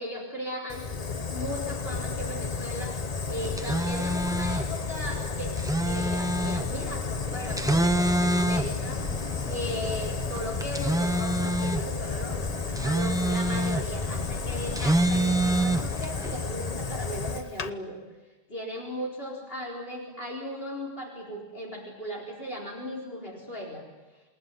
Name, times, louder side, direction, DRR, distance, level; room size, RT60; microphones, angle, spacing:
voice 1, 0.0-3.0 3.3-5.6 5.8-9.1 9.5-18.0 18.5-23.8, equal, 65° left, -1 dB, 4.6 m, -37 dB
Fire, 0.7-17.7, left 5 dB, 40° left, 1.1 m, -32 dB
sound 1, 3.4-16.3, right 1 dB, 5° right, 0.7 m, -28 dB
28.0 x 20.5 x 9.7 m, 1.2 s
omnidirectional pair, 1.1 m